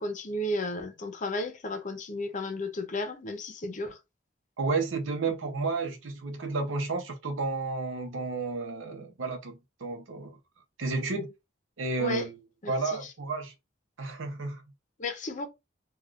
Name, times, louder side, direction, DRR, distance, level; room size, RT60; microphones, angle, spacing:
voice 1, 0.0-4.0 12.0-12.2 12.8-13.0 15.0-15.5, left 1 dB, 40° left, 0.7 m, -33 dB
voice 2, 4.6-10.4 10.8-11.3 11.8-12.4 12.7-13.5 14.0-14.6, right 3 dB, 85° right, 0.7 m, -32 dB
3.4 x 2.3 x 2.4 m
head